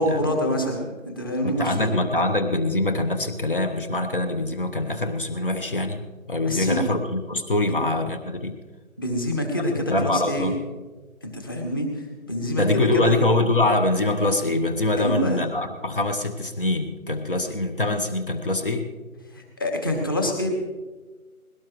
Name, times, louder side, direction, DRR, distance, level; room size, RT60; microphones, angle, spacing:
voice 1, 0.0-2.0 6.4-6.8 9.0-10.5 11.2-13.2 15.0-15.4 19.3-20.5, equal, 15° left, 2 dB, 1.2 m, -26 dB
voice 2, 1.4-6.0 6.3-8.5 9.9-10.6 12.6-18.9, left 2 dB, 35° left, 7 dB, 1.1 m, -24 dB
21.0 x 17.5 x 3.1 m, 1.3 s
figure-of-eight pair, 165°, 44 cm